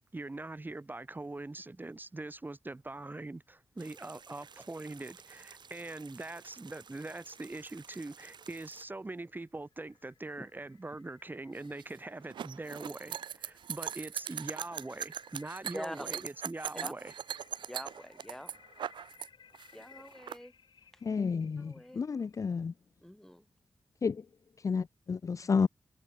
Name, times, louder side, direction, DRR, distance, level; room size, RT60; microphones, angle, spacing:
voice 1, 0.0-17.1, right 2 dB, 25° right, 2.4 m, -42 dB
sound 1, 3.8-8.9, right 6 dB, 70° right, 1.8 m, -54 dB
sound 2, 9.2-22.6, left 7 dB, 85° left, 5.8 m, -63 dB
sound 3, 11.6-19.3 19.5-20.4, right 9 dB, 90° right, 0.4 m, -40 dB
voice 2, 15.7-16.2 16.8-16.9 17.7-18.5 19.7-20.5 21.6-22.0 23.0-23.4, equal, 5° left, 6.6 m, -44 dB
voice 3, 21.0-22.7 24.0-24.2 24.6-25.7, left 5 dB, 45° left, 0.4 m, -31 dB
wide cardioid pair, 85°, 8 cm